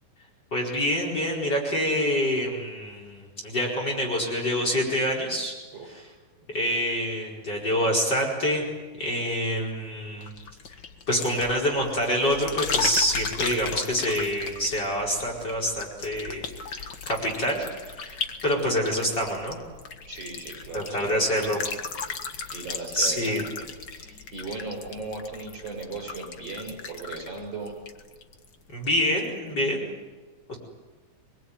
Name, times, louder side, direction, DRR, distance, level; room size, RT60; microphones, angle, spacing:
voice 1, 0.5-5.5 6.5-8.6 9.0-10.3 11.1-19.6 20.7-21.6 22.4-22.5 22.9-23.4 28.7-29.8 30.5-30.6, equal, 30° left, -1 dB, 5.1 m, -26 dB
voice 2, 5.7-6.1 20.1-21.5 22.0-22.3 22.5-23.7 23.9-27.8, right 3 dB, 45° right, 2 dB, 8.3 m, -37 dB
sound 1, 10.2-28.5 28.8-29.3, left 5 dB, 45° left, 1.5 m, -36 dB
25.0 x 21.5 x 9.6 m, 1.3 s
omnidirectional pair, 3.9 m